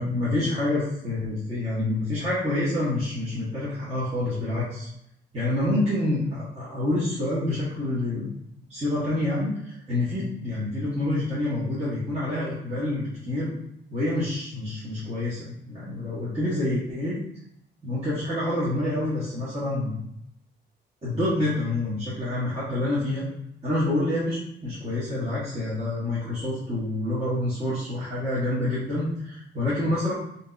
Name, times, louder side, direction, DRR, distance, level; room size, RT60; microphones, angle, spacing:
voice 1, 0.0-4.9 5.3-8.4 8.7-13.5 13.9-17.1 17.8-20.0 21.0-23.2 23.6-30.1, left 1 dB, 30° right, -10 dB, 1.2 m, -27 dB
3.4 x 2.7 x 2.5 m, 0.77 s
cardioid pair, 90°, 20 cm